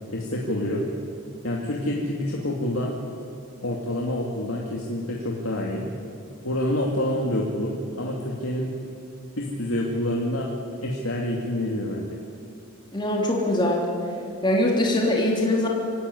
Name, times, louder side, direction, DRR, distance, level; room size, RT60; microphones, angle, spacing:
voice 1, 0.1-0.9 1.4-3.0 3.6-5.9 6.4-8.7 9.4-10.5 10.8-12.1, left 1 dB, 80° left, -2 dB, 2.5 m, -27 dB
voice 2, 12.9-13.9 14.4-15.7, left 1 dB, 20° left, -1 dB, 3.2 m, -22 dB
24.5 x 17.5 x 9.8 m, 2.5 s
head